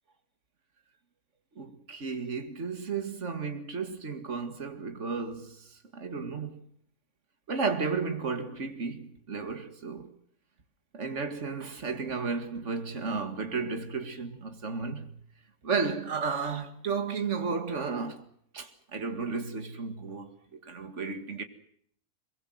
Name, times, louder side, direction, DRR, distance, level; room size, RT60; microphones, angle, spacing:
voice 1, 1.6-6.6 7.5-10.1 10.9-15.1 15.6-18.3 18.5-21.4, right 4 dB, 50° right, 2.4 m, -33 dB
23.0 x 22.5 x 7.9 m
omnidirectional pair, 1.6 m